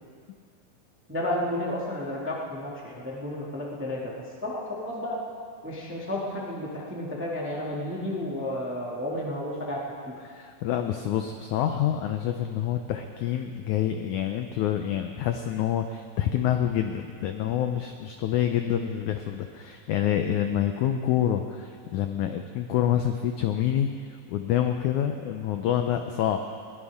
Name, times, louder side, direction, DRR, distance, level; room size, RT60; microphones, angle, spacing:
voice 1, 1.1-4.1 4.4-5.2 5.6-9.8 10.0-10.1, left 1 dB, 5° right, -4 dB, 1.0 m, -32 dB
voice 2, 10.2-23.9 24.3-26.5, left 10 dB, 90° left, 6 dB, 1.7 m, -27 dB
21.0 x 18.0 x 3.6 m, 2.3 s
omnidirectional pair, 4.2 m